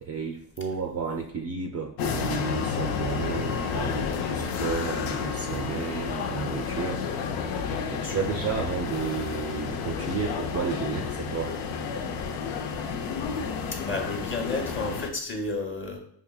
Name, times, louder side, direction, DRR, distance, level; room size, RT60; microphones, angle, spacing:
voice 1, 0.0-7.0 7.9-11.6, right 5 dB, 35° right, 2 dB, 0.4 m, -32 dB
sound 1, 2.0-15.1, left 6 dB, 90° left, 0.6 m, -31 dB
voice 2, 7.9-8.2 13.7-16.0, left 3 dB, 25° left, 2 dB, 0.8 m, -32 dB
5.2 x 2.8 x 2.3 m, 0.70 s
supercardioid pair, 90°, 48 cm